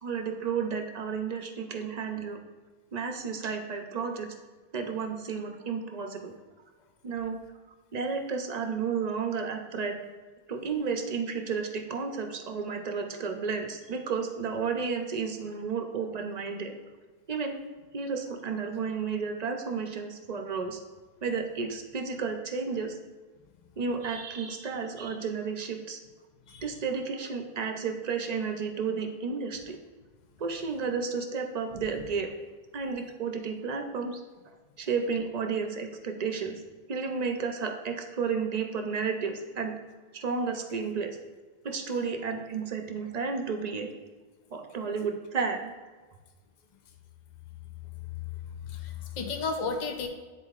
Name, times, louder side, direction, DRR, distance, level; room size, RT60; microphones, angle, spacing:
voice 1, 0.0-2.4 2.9-4.3 4.7-6.3 7.0-7.4 7.9-10.0 10.5-16.7 17.3-17.5 17.9-20.8 21.2-23.0 23.8-26.0 26.6-29.8 30.4-32.3 32.7-34.2 34.8-36.5 36.9-39.7 40.1-41.2 41.6-43.9 44.5-45.7, right 5 dB, 50° right, 4 dB, 0.6 m, -32 dB
voice 2, 48.7-50.1, left 4 dB, 50° left, 5 dB, 0.7 m, -33 dB
9.5 x 4.1 x 2.4 m, 1.3 s
omnidirectional pair, 1.0 m